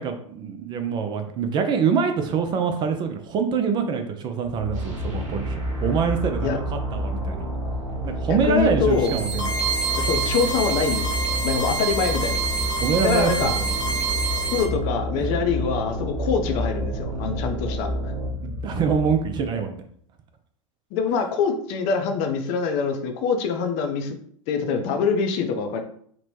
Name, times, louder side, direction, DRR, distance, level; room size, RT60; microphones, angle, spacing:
voice 1, 0.0-7.5 8.0-9.6 12.7-14.0 15.2-15.3 18.4-19.8, right 6 dB, 25° right, 6 dB, 0.4 m, -25 dB
sound 1, 4.4-19.8, left 2 dB, 85° left, 1.0 m, -34 dB
sound 2, 4.7-18.3, right 2 dB, 45° right, 1.1 m, -30 dB
voice 2, 8.3-9.1 10.1-11.1 11.4-12.4 13.0-13.6 14.5-17.9 20.9-24.2 24.5-25.8, left 5 dB, 45° left, 5 dB, 0.5 m, -24 dB
sound 3, 8.9-14.6, right 4 dB, 25° left, 1.0 m, -27 dB
2.9 x 2.1 x 3.1 m, 0.62 s
figure-of-eight pair, 85°, 17 cm